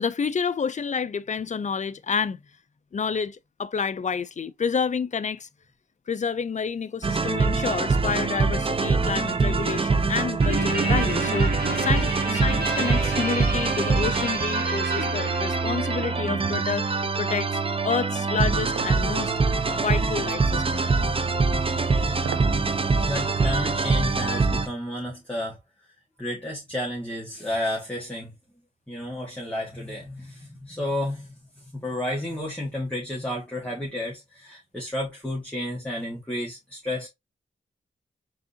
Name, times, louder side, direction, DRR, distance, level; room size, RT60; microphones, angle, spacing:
voice 1, 0.0-2.4 2.9-5.5 6.1-11.5 11.8-16.9 17.2-19.3 19.7-20.9, left 6 dB, 35° left, 0.4 m, -29 dB
sound 1, 7.0-24.7, right 4 dB, 25° right, 0.6 m, -24 dB
Guitar, 10.4-17.1, right 2 dB, 50° right, 2.4 m, -32 dB
sound 2, 18.8-19.0 20.5-20.8 22.2-22.6 23.0-23.1, right 8 dB, 75° right, 0.5 m, -35 dB
voice 2, 23.1-25.6 26.2-28.3 28.9-31.3 31.6-37.1, left 1 dB, 5° left, 1.6 m, -31 dB
4.8 x 3.6 x 2.6 m
wide cardioid pair, 80°, 20 cm